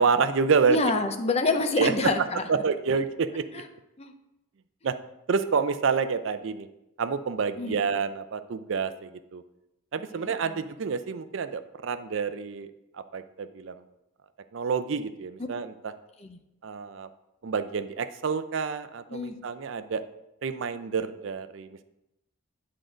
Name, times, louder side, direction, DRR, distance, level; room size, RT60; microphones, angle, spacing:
voice 1, 0.0-0.8 1.8-2.1 2.5-3.6 4.8-4.9 5.3-6.7 7.0-9.4 9.9-12.7 13.1-13.8 14.5-15.7 16.6-17.1 17.4-20.0 20.4-21.8, right 5 dB, 65° right, 11 dB, 0.4 m, -28 dB
voice 2, 0.7-2.4 3.5-3.6 4.0-4.1 7.6-7.8 10.1-10.6 16.2-16.4 19.1-19.4, left 3 dB, 30° left, 7 dB, 0.6 m, -27 dB
9.9 x 3.8 x 5.0 m, 0.90 s
head